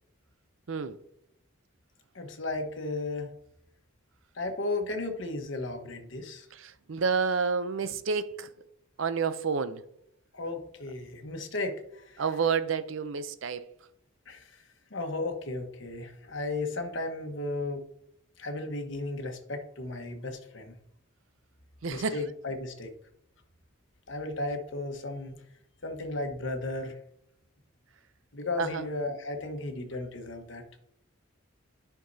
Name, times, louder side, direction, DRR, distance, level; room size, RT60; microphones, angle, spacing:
voice 1, 0.7-1.0 6.5-8.5 9.0-9.8 12.2-13.7 21.8-22.2 28.6-28.8, right 5 dB, 70° right, 0.5 m, -29 dB
voice 2, 2.1-3.3 4.3-6.5 10.3-12.2 14.3-14.6 14.9-17.8 18.4-20.7 21.9-22.9 24.1-25.3 25.8-27.0 28.3-30.6, left 2 dB, 60° left, 1.2 m, -35 dB
11.5 x 5.9 x 2.7 m
head